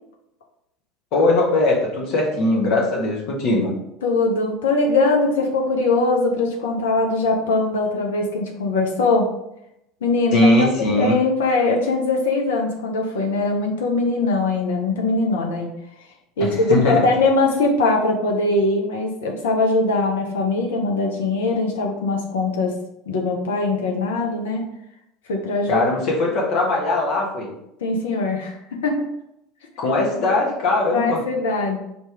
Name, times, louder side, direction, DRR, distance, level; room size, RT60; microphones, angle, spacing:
voice 1, 1.1-3.7 10.3-11.2 16.4-17.1 25.7-27.5 29.8-31.2, left 2 dB, 55° left, -1 dB, 1.3 m, -20 dB
voice 2, 4.0-9.3 10.0-15.7 16.4-22.8 23.1-24.7 25.3-25.8 27.8-29.1 30.9-31.8, left 3 dB, 70° left, 1 dB, 0.8 m, -21 dB
4.4 x 3.0 x 3.4 m, 0.81 s
figure-of-eight pair, 70°, 0 cm